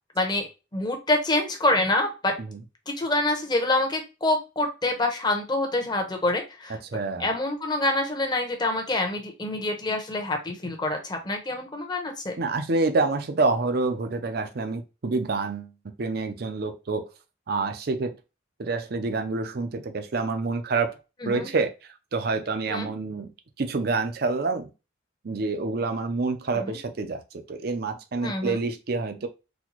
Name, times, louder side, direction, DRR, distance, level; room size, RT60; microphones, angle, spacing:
voice 1, 0.1-0.5 0.7-2.4 2.9-6.8 7.2-12.3 21.2-21.5 22.7-22.9 26.5-26.8 28.2-28.6, left 2 dB, 20° left, 0.8 m, -26 dB
voice 2, 6.9-7.3 12.4-17.1 17.5-18.2 18.6-21.0 21.2-21.7 22.1-23.3 23.6-24.7 25.2-27.2 27.5-29.3, right 3 dB, 55° right, 0.5 m, -27 dB
4.1 x 2.3 x 2.9 m
head